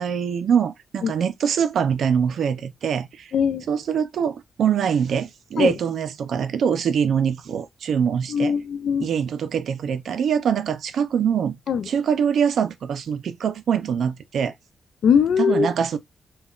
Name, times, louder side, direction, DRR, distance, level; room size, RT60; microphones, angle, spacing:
voice 1, 0.0-3.3 3.7-8.5 9.0-11.6 11.9-14.5 15.4-16.0, right 7 dB, 70° right, 0.4 m, -23 dB
voice 2, 3.3-3.6 5.6-5.7 8.3-9.1 11.7-11.9 15.0-15.7, left 7 dB, 75° left, 0.3 m, -20 dB
3.6 x 2.2 x 2.3 m
wide cardioid pair, 155°, 0 cm